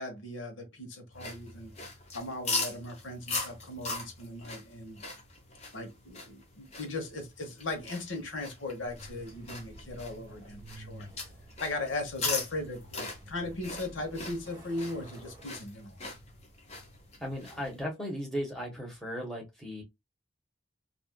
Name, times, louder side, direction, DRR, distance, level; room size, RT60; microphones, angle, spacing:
voice 1, 0.0-1.7 2.1-5.0 5.7-11.1 11.6-16.0, left 2 dB, 85° left, 1.0 m, -38 dB
sound 1, 1.1-17.8, left 3 dB, 35° left, 0.8 m, -40 dB
Truck, 8.8-17.5, right 1 dB, 25° right, 1.3 m, -52 dB
voice 2, 17.2-19.8, equal, 5° left, 1.1 m, -36 dB
3.3 x 2.5 x 2.2 m
head